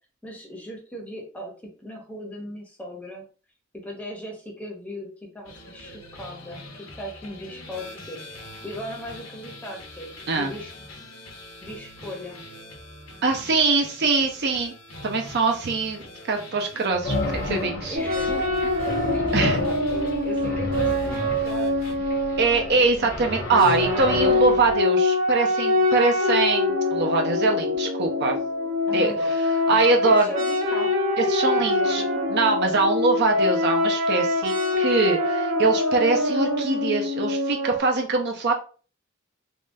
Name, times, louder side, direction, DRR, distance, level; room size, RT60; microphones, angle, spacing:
voice 1, 0.2-1.5 1.8-3.3 3.7-10.7 11.6-12.4 17.8-22.0 28.9-29.4 29.7-30.9 31.5-32.1, equal, 5° left, -1 dB, 0.7 m, -38 dB
sound 1, 5.4-21.9, left 1 dB, 75° left, 0.9 m, -44 dB
voice 2, 13.2-14.7 15.0-18.0 19.3-19.6 22.4-28.4 28.9-29.1 29.7-30.3 31.2-32.0 32.3-38.5, right 3 dB, 55° right, 3 dB, 0.5 m, -23 dB
sound 2, 17.0-24.8, left 2 dB, 50° left, 0.7 m, -31 dB
sound 3, 17.9-23.0 23.5-37.8, left 2 dB, 80° right, 1.2 m, -24 dB
3.5 x 2.2 x 2.6 m, 0.39 s
head